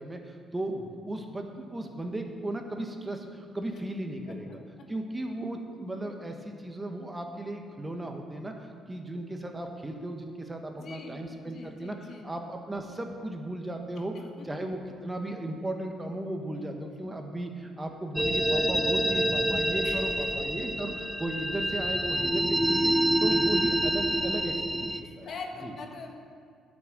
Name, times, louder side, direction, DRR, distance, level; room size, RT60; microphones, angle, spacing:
voice 1, 0.0-4.6 4.9-14.1 14.4-22.9 23.2-25.3 25.6-25.7, right 1 dB, 20° right, 4 dB, 1.4 m, -36 dB
voice 2, 10.7-12.3 14.4-14.5 16.5-16.7 19.8-20.0 20.4-20.5 24.9-26.1, left 4 dB, 60° left, 2 dB, 1.5 m, -43 dB
sound 1, 18.2-25.0, right 1 dB, 5° right, 0.5 m, -27 dB
10.0 x 6.4 x 7.6 m, 2.1 s
supercardioid pair, 60°, 0 cm